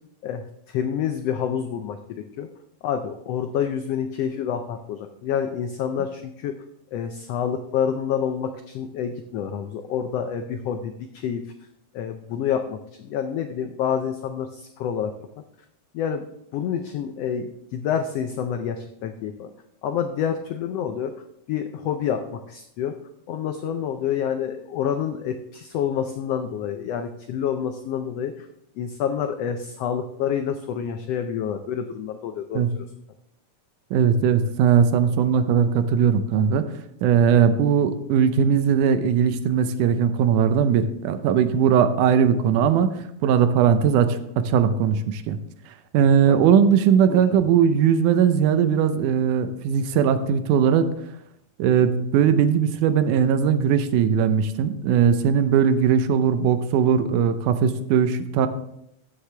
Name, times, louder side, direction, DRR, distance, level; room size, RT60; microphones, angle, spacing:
voice 1, 0.7-2.5 2.8-6.6 6.9-11.4 11.9-15.1 15.9-16.3 16.5-19.5 19.8-21.1 21.5-23.0 23.3-28.5 28.8-32.6 46.3-46.4 47.1-47.4, left 8 dB, 90° left, 6 dB, 1.4 m, -28 dB
voice 2, 33.9-36.7 37.0-43.0 43.2-45.4 45.9-50.9 51.6-58.5, right 7 dB, 85° right, 10 dB, 2.2 m, -19 dB
15.5 x 6.5 x 3.4 m, 0.78 s
omnidirectional pair, 3.6 m